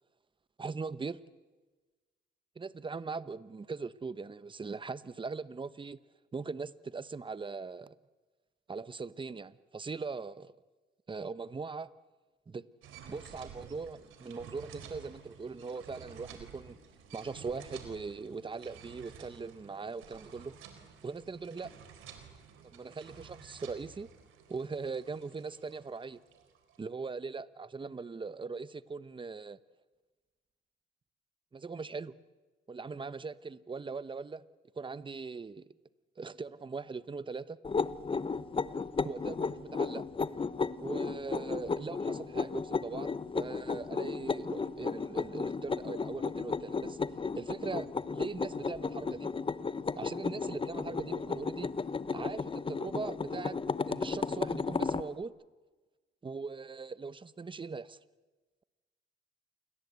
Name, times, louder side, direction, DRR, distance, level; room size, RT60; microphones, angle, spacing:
voice 1, 0.6-1.2 2.6-6.0 6.3-8.0 8.7-10.5 11.1-11.9 12.5-12.7 13.1-16.8 17.1-20.5 21.0-21.7 22.7-24.1 24.5-26.2 26.8-29.6 31.5-32.1 32.7-34.4 34.7-35.7 36.2-37.6 39.0-40.0 40.8-47.0 47.3-49.3 50.0-51.7 52.1-53.6 53.8-55.3 56.2-58.0, right 4 dB, 25° right, 16 dB, 1.0 m, -40 dB
sound 1, 12.8-26.8, right 7 dB, 90° right, 4.2 m, -52 dB
sound 2, 37.6-55.1, left 4 dB, 25° left, 0.9 m, -34 dB
29.0 x 22.5 x 8.2 m, 1.3 s
cardioid pair, 90°, 20 cm